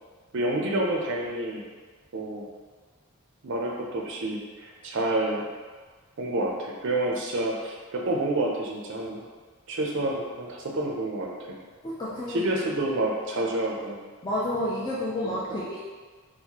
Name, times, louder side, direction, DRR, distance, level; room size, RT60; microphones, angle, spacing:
voice 1, 0.3-1.6 2.1-2.5 3.4-5.4 6.2-9.3 9.7-11.6 12.3-14.0 15.2-15.6, right 1 dB, 55° right, -1 dB, 0.5 m, -29 dB
voice 2, 11.8-12.5 14.2-15.8, left 1 dB, 20° left, -7 dB, 0.3 m, -30 dB
4.5 x 2.1 x 2.8 m, 1.5 s
head